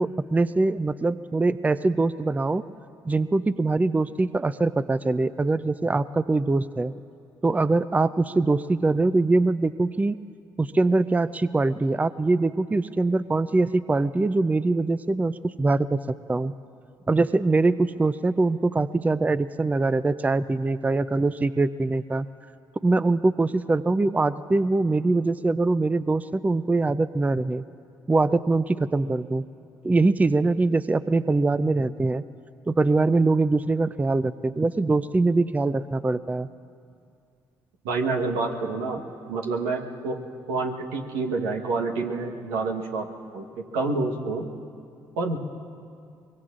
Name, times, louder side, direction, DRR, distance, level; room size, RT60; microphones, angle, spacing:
voice 1, 0.0-2.6 3.1-6.9 7.4-10.2 10.6-16.5 17.1-22.3 22.8-27.6 28.1-29.4 29.8-32.2 32.7-36.5, right 3 dB, 15° right, 15 dB, 0.4 m, -23 dB
voice 2, 37.8-39.0 39.3-40.2 40.5-43.1 43.3-43.4 43.7-44.5 45.2-45.4, right 3 dB, 85° right, 1 dB, 1.2 m, -27 dB
24.0 x 22.5 x 2.5 m, 2.4 s
hypercardioid pair, 50°, 10 cm